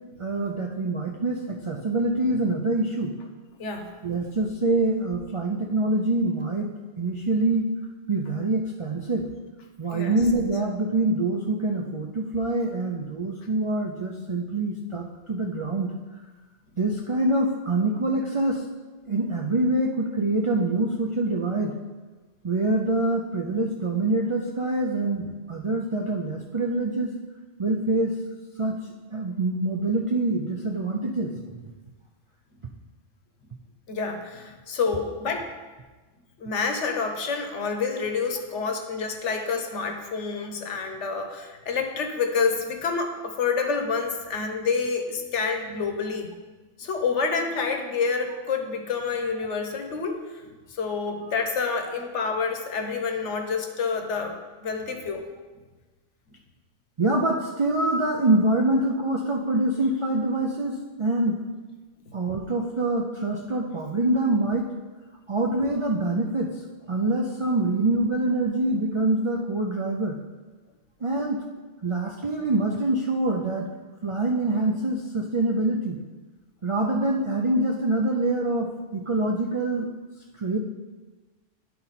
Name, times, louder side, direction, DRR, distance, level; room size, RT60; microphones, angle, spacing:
voice 1, 0.2-3.2 4.0-6.7 7.0-7.7 8.1-9.3 9.8-15.9 16.8-18.7 19.1-21.7 22.4-27.1 27.6-28.2 28.6-28.8 29.1-31.4 57.0-61.4 62.1-64.7 65.3-66.6 66.9-70.2 71.0-71.4 71.8-73.7 74.0-76.0 76.6-79.9 80.4-80.6, right 2 dB, 55° right, 0 dB, 0.3 m, -25 dB
voice 2, 3.6-3.9 9.9-10.2 33.9-35.5 36.4-46.3 46.8-50.4 50.7-55.2, left 5 dB, 70° left, 5 dB, 1.2 m, -28 dB
10.5 x 4.3 x 4.1 m, 1.3 s
omnidirectional pair, 1.3 m